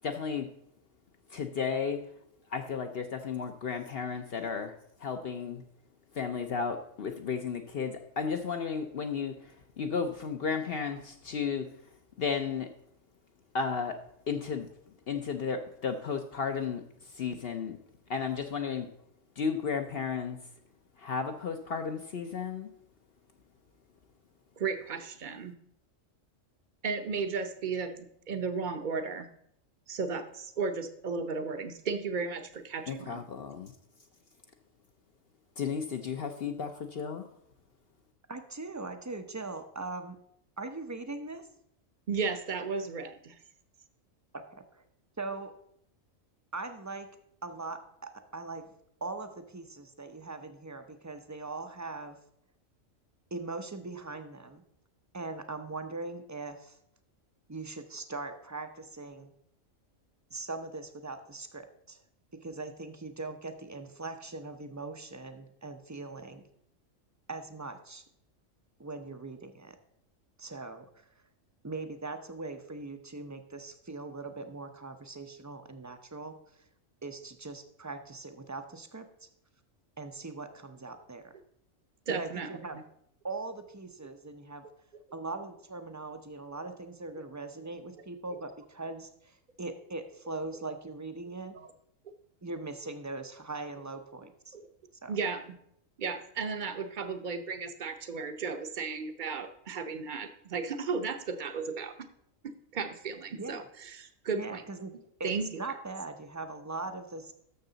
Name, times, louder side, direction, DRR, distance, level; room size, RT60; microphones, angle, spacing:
voice 1, 0.0-0.5 1.3-2.0 2.5-4.7 5.0-5.6 6.1-11.7 12.2-12.7 13.5-14.0 14.3-14.7 15.1-17.8 18.1-18.9 19.4-20.4 21.0-22.7 32.9-33.7 35.6-37.3, left 6 dB, 55° left, 6 dB, 0.8 m, -33 dB
voice 2, 24.6-25.5 26.8-29.3 29.9-33.2 42.1-43.4 82.1-82.5 91.5-91.7 94.5-94.7 95.1-95.5 96.0-101.9 102.7-104.6 105.2-105.5, right 5 dB, 45° right, 8 dB, 0.8 m, -34 dB
voice 3, 38.3-40.2 40.6-41.5 44.3-44.8 45.2-45.5 46.5-47.1 47.4-48.7 49.0-52.2 53.3-54.6 55.1-56.8 57.5-59.3 60.3-62.0 62.4-66.4 67.3-68.0 68.8-69.8 70.4-71.1 71.6-76.7 77.0-79.3 80.0-81.3 82.1-82.8 83.2-84.6 85.1-91.6 92.4-94.5 95.0-95.2 103.3-103.7 104.3-104.9 105.2-107.3, right 3 dB, 25° right, 8 dB, 0.4 m, -40 dB
12.5 x 6.6 x 3.9 m, 0.71 s
omnidirectional pair, 1.4 m